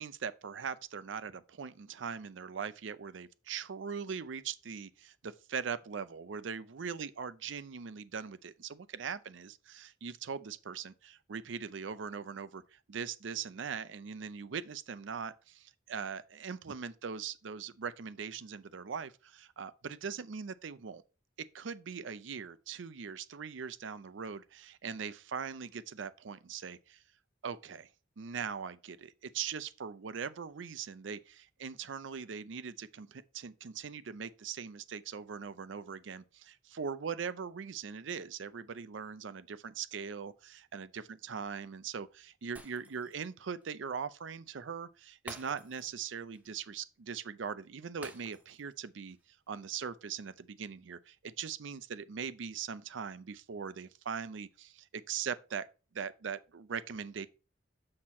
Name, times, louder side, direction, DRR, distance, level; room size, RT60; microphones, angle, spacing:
voice 1, 0.0-21.0 21.5-27.0 27.4-27.9 28.2-49.2 49.5-55.7 55.9-57.3, right 6 dB, 70° right, 0.5 m, -41 dB
Shatter, 42.6-43.3 43.6-43.7 45.3-46.0 46.3-46.5 48.0-48.7 49.1-49.2, right 1 dB, 10° right, 0.9 m, -50 dB
6.6 x 5.9 x 4.2 m
head